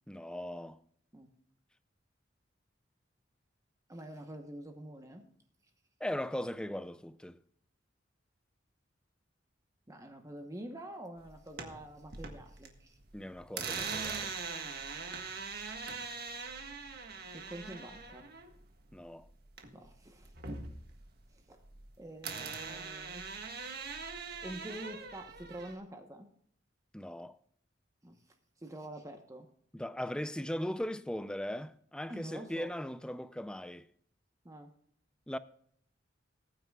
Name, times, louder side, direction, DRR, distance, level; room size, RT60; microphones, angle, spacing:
voice 1, 0.1-0.8 6.0-7.4 13.1-14.3 18.9-19.3 26.9-27.4 29.7-33.9 35.3-35.4, left 1 dB, 5° left, 0.4 m, -38 dB
voice 2, 3.9-5.2 9.9-13.0 16.4-16.6 17.3-18.3 19.7-20.3 21.3-21.6 22.0-23.2 23.6-23.7 24.4-26.3 28.0-28.2 28.6-29.5 32.1-32.7 34.4-34.7, right 1 dB, 20° right, 1.0 m, -46 dB
sound 1, 11.3-12.7 13.0-19.9 20.2-21.9 22.2-25.8, right 5 dB, 55° right, 1.6 m, -41 dB
20.5 x 9.2 x 2.3 m
head